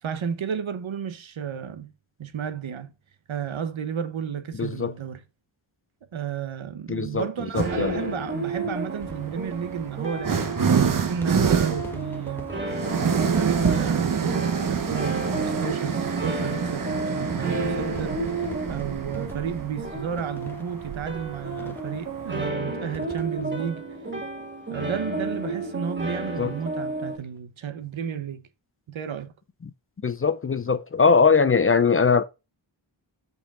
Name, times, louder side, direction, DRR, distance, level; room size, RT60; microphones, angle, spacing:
voice 1, 0.0-1.9 2.2-2.9 3.3-5.2 6.1-12.5 13.1-18.4 18.7-23.8 24.7-28.5 28.9-29.3, right 8 dB, 85° right, 1.1 m, -32 dB
voice 2, 4.6-4.9 6.9-8.0 26.4-26.5 29.6-29.7 30.0-32.2, left 5 dB, 30° left, 0.4 m, -21 dB
sound 1, 7.5-8.0 9.0-22.5, right 6 dB, 45° right, 0.9 m, -27 dB
sound 2, 7.6-27.2, right 2 dB, 25° right, 2.4 m, -32 dB
sound 3, 8.9-24.9 25.2-25.3 25.5-25.6 26.9-27.1, equal, 5° left, 1.1 m, -46 dB
7.2 x 5.4 x 3.7 m
wide cardioid pair, 120°, 46 cm